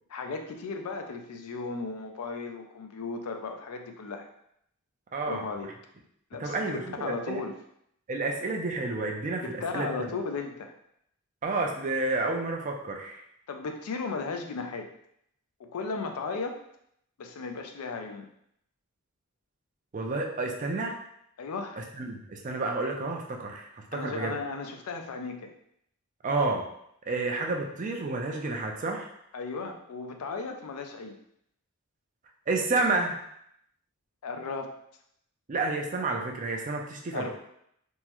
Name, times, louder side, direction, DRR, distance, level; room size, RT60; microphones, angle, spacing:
voice 1, 0.1-4.3 5.3-5.7 6.3-7.6 9.4-10.7 13.5-14.9 15.6-16.6 17.2-18.3 21.4-21.8 23.9-25.5 29.3-31.2 34.2-34.7 37.1-37.3, left 4 dB, 85° left, 5 dB, 0.4 m, -35 dB
voice 2, 5.1-5.5 6.4-7.4 8.1-10.1 11.4-13.2 19.9-21.0 21.8-24.4 26.2-26.7 27.1-29.1 32.5-33.2 35.5-37.3, right 3 dB, 35° right, 1 dB, 0.4 m, -30 dB
3.5 x 2.0 x 2.9 m, 0.73 s
head